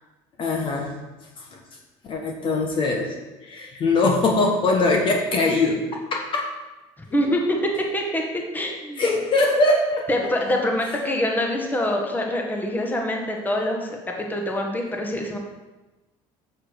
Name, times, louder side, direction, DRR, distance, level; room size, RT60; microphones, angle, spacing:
voice 1, 0.4-0.9 1.5-1.6 2.0-3.1 3.4-6.4 9.0-10.1, left 2 dB, 45° left, 1 dB, 1.4 m, -22 dB
voice 2, 7.1-8.2 8.5-9.0 10.1-15.4, left 1 dB, 15° left, 1 dB, 1.6 m, -25 dB
7.4 x 6.6 x 5.2 m, 1.1 s
supercardioid pair, 95°, 12 cm